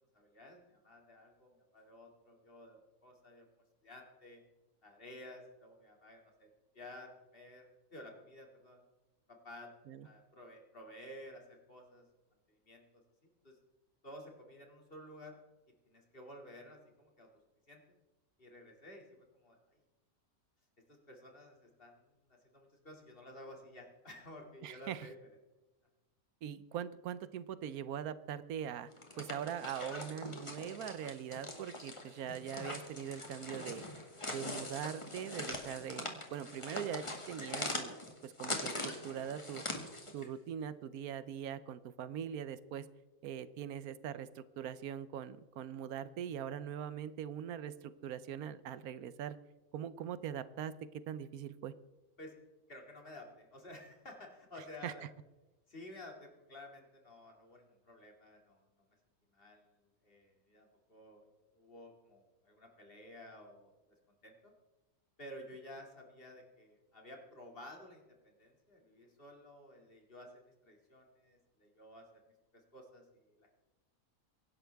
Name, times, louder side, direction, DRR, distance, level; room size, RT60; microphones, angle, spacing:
voice 1, 0.1-3.5 3.8-4.4 4.8-6.5 6.7-8.8 9.3-9.7 10.0-12.1 12.5-13.6 14.0-15.4 15.9-17.3 17.7-18.0 18.4-19.8 20.9-25.1 52.2-52.3 52.7-55.0 55.7-58.7 59.3-63.8 64.2-64.5 65.2-72.2 72.5-73.5, left 1 dB, 40° left, 1 dB, 2.7 m, -53 dB
voice 2, 24.6-25.1 26.4-28.9 29.2-33.8 34.3-38.0 38.2-39.6 40.1-42.9 43.2-49.4 49.7-50.7 51.1-51.7 54.8-54.9, right 9 dB, 80° right, 15 dB, 1.1 m, -42 dB
sound 1, 28.9-40.3, left 1 dB, 20° left, 1.9 m, -42 dB
24.0 x 11.0 x 3.5 m, 1.1 s
omnidirectional pair, 1.5 m